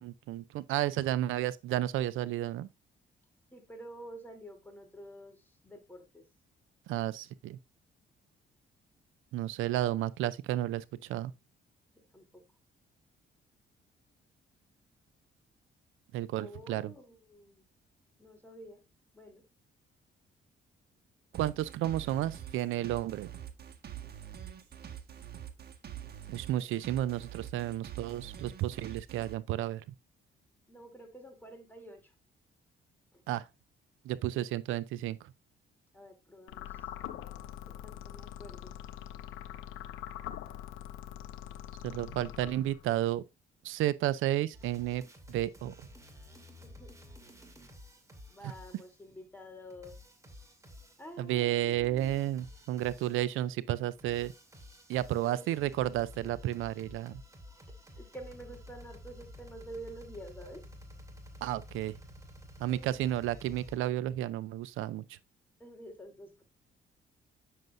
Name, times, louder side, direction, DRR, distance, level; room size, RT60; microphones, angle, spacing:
voice 1, 0.0-2.7 6.9-7.6 9.3-10.8 11.1-11.3 16.1-16.8 21.4-23.3 26.3-29.8 33.3-33.4 34.1-35.2 41.8-43.2 43.6-45.0 45.3-45.7 51.2-54.3 54.9-57.2 61.4-61.9 62.6-65.0, right 13 dB, 85° right, 0.5 m, -32 dB
voice 2, 3.5-6.2 11.9-12.4 16.4-17.6 18.2-18.8 19.1-19.4 30.7-32.1 33.1-33.2 35.9-36.9 37.6-38.7 46.6-46.9 48.3-50.0 51.0-52.3 55.1-55.6 57.5-60.6 62.7-63.0 65.6-66.4, right 1 dB, 10° left, 3.1 m, -49 dB
sound 1, 21.3-29.3, right 10 dB, 55° right, 1.5 m, -45 dB
sound 2, 36.5-43.0, left 12 dB, 90° left, 0.9 m, -44 dB
sound 3, 44.5-49.0 49.7-51.2 51.7-53.4 53.8-63.8, left 1 dB, 15° right, 2.4 m, -52 dB
9.2 x 6.6 x 2.6 m
cardioid pair, 90°, 20 cm